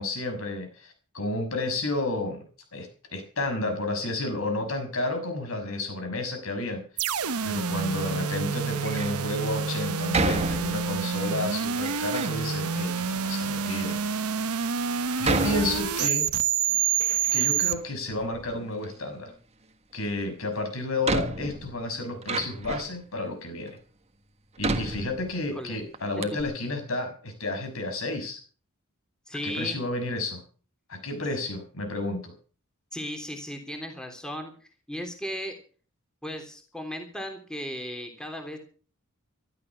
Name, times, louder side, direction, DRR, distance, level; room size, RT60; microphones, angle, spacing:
voice 1, 0.0-2.4 2.7-6.8 7.4-14.2 15.2-16.3 17.3-19.3 19.9-23.8 24.6-28.4 29.4-30.4 30.9-32.3, left 2 dB, 65° left, 7 dB, 6.2 m, -31 dB
sound 1, 7.0-17.7, right 7 dB, 85° right, 1.1 m, -28 dB
Door, 8.7-9.2 10.1-11.1 11.8-12.4 13.2-13.3 14.0-14.1 15.2-16.4 16.7-17.8 18.1-18.9 20.3-20.4 21.0-23.0 23.7-23.8 24.6-25.7 25.9-26.0 26.2-26.4, right 3 dB, 30° right, 1.5 m, -31 dB
voice 2, 29.3-29.8 32.9-34.5 34.9-35.5 36.2-38.6, equal, 5° left, 4 dB, 3.3 m, -36 dB
15.5 x 13.5 x 6.1 m, 0.40 s
head